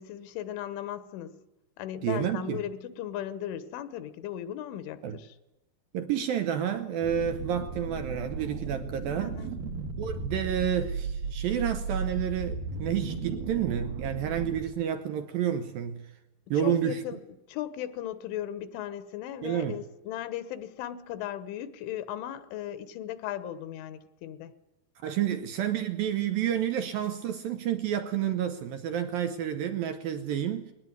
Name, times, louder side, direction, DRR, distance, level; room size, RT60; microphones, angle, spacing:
voice 1, 0.0-1.4 1.8-5.4 9.2-9.5 16.6-17.2 17.5-24.5, left 11 dB, 80° left, 3.5 m, -37 dB
voice 2, 2.0-2.6 5.0-5.2 5.9-9.4 10.0-16.1 16.5-17.0 19.4-19.8 25.0-30.7, right 9 dB, 80° right, 2.0 m, -30 dB
sound 1, 7.0-14.6, right 4 dB, 60° right, 3.1 m, -35 dB
20.5 x 19.0 x 9.5 m
omnidirectional pair, 5.5 m